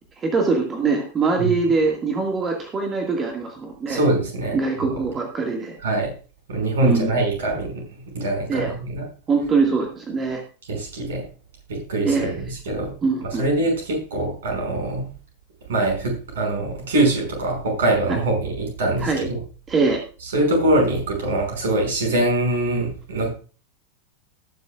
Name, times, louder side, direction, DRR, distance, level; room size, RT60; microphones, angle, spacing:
voice 1, 0.2-4.0 4.5-5.8 6.8-7.1 8.5-8.7 9.3-10.4 12.0-12.3 13.0-13.5 19.0-19.3 19.7-20.0, right 4 dB, 20° right, 2 dB, 2.0 m, -22 dB
voice 2, 3.9-5.0 5.8-6.1 6.5-9.0 10.7-11.2 11.7-12.9 13.2-15.1 15.7-19.4 20.2-23.3, right 2 dB, 60° right, 0 dB, 6.0 m, -23 dB
20.0 x 7.0 x 2.5 m, 0.36 s
figure-of-eight pair, 90°, 0 cm